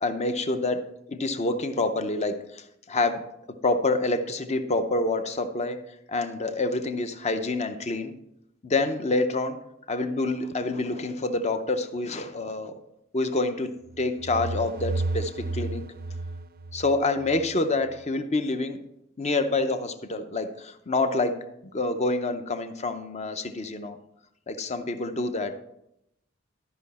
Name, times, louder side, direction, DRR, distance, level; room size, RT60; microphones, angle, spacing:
voice 1, 0.0-3.2 3.6-5.8 6.1-8.1 8.6-9.6 9.9-12.7 13.1-15.8 16.7-18.8 19.2-21.4 21.7-24.0 24.5-25.6, left 2 dB, 35° left, 9 dB, 0.6 m, -27 dB
sound 1, 13.9-17.5, right 2 dB, 45° right, 0.4 m, -32 dB
12.5 x 5.6 x 4.2 m, 0.81 s
head